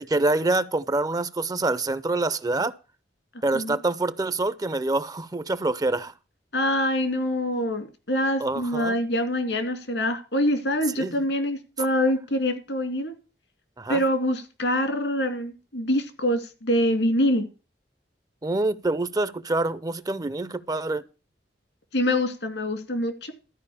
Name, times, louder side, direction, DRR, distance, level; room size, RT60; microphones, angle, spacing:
voice 1, 0.0-2.7 3.4-6.1 8.4-8.9 11.0-11.1 13.8-14.0 18.4-21.0, right 2 dB, 20° right, 0.5 m, -26 dB
voice 2, 6.5-13.1 13.9-17.4 21.9-23.3, left 1 dB, 80° left, 2.5 m, -25 dB
13.0 x 5.0 x 8.5 m
head